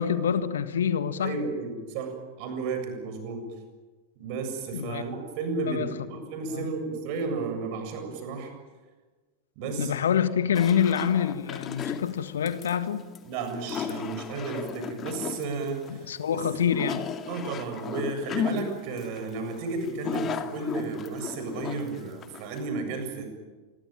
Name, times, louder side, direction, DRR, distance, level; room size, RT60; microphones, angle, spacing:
voice 1, 0.0-1.5 4.7-5.0 5.6-5.9 6.5-6.7 9.8-13.0 15.9-17.0, left 8 dB, 65° left, 1.6 m, -26 dB
voice 2, 1.2-3.4 4.2-8.5 9.6-9.9 13.3-16.1 16.3-16.7 17.3-23.2, right 4 dB, 45° right, 7.4 m, -33 dB
sound 1, 10.5-22.7, left 7 dB, 25° left, 2.4 m, -35 dB
27.5 x 22.5 x 9.1 m
figure-of-eight pair, 90°, 0 cm